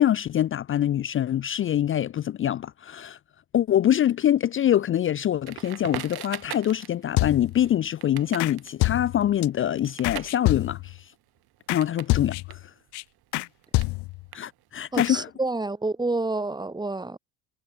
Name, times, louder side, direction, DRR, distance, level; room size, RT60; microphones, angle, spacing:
voice 1, 0.0-3.2 3.5-11.1 11.7-12.6 14.3-15.3, left 11 dB, 30° left, 0.6 m, -24 dB
Crackle, 5.4-12.2 12.4-14.9, right 17 dB, 60° right, 4.5 m, -41 dB
sound 1, 7.2-7.7 8.4-8.5 8.8-9.5 10.0-11.0 11.7-11.8 12.1-12.6 12.9-13.0 13.3-13.5 13.7-14.3 15.0-15.1, left 22 dB, 65° left, 2.2 m, -27 dB
voice 2, 14.9-17.2, right 2 dB, 10° right, 2.6 m, -28 dB
cardioid pair, 125°, 43 cm